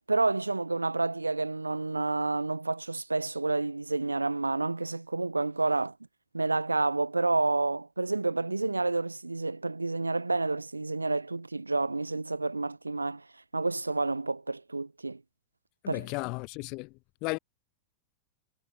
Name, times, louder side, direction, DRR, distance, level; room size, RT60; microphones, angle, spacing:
voice 1, 0.1-5.9 6.3-13.2 13.5-15.2 15.9-16.1, right 3 dB, 80° right, 2.5 m, -29 dB
voice 2, 15.8-16.9 17.2-17.4, left 29 dB, 45° left, 0.9 m, -34 dB
figure-of-eight pair, 90°, 0 cm